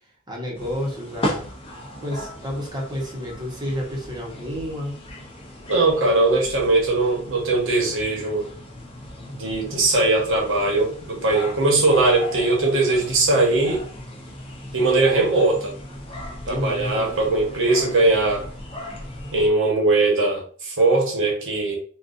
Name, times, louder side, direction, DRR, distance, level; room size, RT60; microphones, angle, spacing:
voice 1, 0.3-1.5 2.0-5.0 16.5-17.2 17.5-17.6, equal, 20° right, 0.9 m, -30 dB
sound 1, 0.6-19.5, left 1 dB, 25° left, 0.7 m, -37 dB
voice 2, 5.7-8.5 9.3-13.8 14.7-15.7 16.4-18.5 19.3-21.8, right 2 dB, 60° right, 1.1 m, -20 dB
4.0 x 2.4 x 2.5 m
head